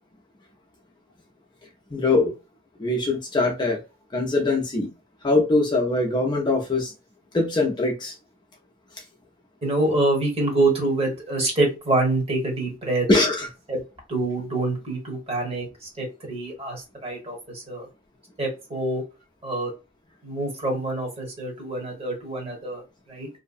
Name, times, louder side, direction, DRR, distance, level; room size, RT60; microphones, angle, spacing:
voice 1, 1.9-2.3 2.8-3.8 4.1-4.9 5.2-6.9 7.3-8.1 13.1-13.5, left 2 dB, 25° left, 0.5 m, -22 dB
voice 2, 9.6-13.1 13.7-13.8 14.1-17.9 18.4-19.0 19.4-19.7 20.2-22.8 23.1-23.3, right 2 dB, 30° right, 1.1 m, -26 dB
2.6 x 2.1 x 2.3 m
head